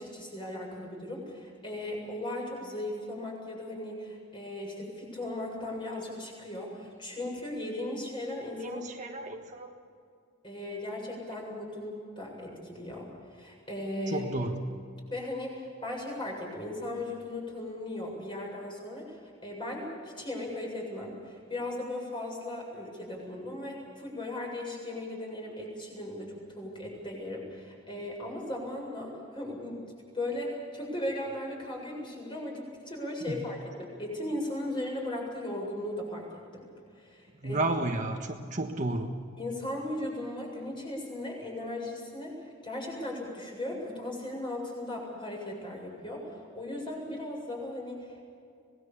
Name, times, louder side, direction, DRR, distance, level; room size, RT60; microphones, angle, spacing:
voice 1, 0.0-8.9 9.3-9.4 10.4-14.3 15.1-29.8 30.1-36.7 36.9-37.7 39.4-48.2, left 1 dB, 25° left, -1 dB, 7.5 m, -37 dB
voice 2, 8.6-9.7 14.1-14.6 33.3-33.4 37.4-39.2, right 2 dB, 40° right, 3 dB, 1.4 m, -32 dB
26.0 x 19.5 x 7.1 m, 2.3 s
head